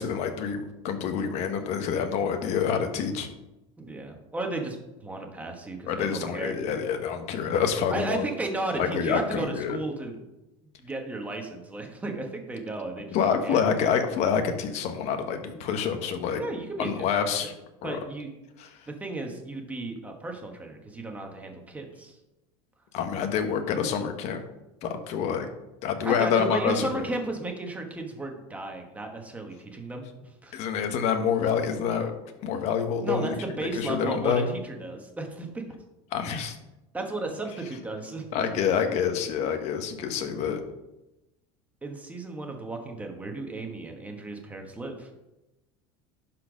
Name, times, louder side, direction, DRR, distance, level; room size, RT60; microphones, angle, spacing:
voice 1, 0.0-3.3 5.9-8.2 8.7-9.8 13.1-16.4 16.8-17.5 17.8-18.0 18.6-18.7 22.9-24.4 24.8-25.5 25.8-27.1 30.5-32.1 32.4-34.5 36.1-36.6 38.3-40.6, left 7 dB, 50° left, 6 dB, 1.2 m, -27 dB
voice 2, 3.8-6.5 7.9-10.2 10.8-13.6 16.3-17.1 17.4-17.5 17.8-18.3 18.9-22.2 26.0-30.6 33.0-35.6 36.9-38.3 41.8-45.1, right 2 dB, 10° right, 3 dB, 1.3 m, -34 dB
11.5 x 4.5 x 5.0 m, 0.98 s
cardioid pair, 145°, 14 cm